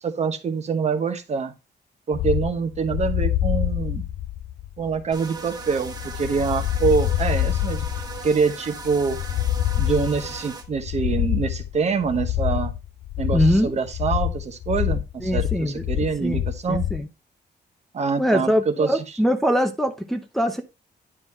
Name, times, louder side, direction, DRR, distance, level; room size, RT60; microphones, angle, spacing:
voice 1, 0.0-1.5 2.1-4.0 4.8-9.2 9.8-12.7 13.2-16.8 17.9-19.0, right 5 dB, 40° right, 8 dB, 1.0 m, -25 dB
sound 1, 2.1-17.0, left 13 dB, 75° left, 0.5 m, -26 dB
sound 2, 5.1-10.6, right 4 dB, 20° right, 1.5 m, -38 dB
voice 2, 13.3-13.8 15.2-15.8 16.2-16.4 16.7-17.1 18.2-20.6, equal, ahead, 3 dB, 0.7 m, -22 dB
10.0 x 4.1 x 4.3 m, 0.26 s
wide cardioid pair, 165°, 18 cm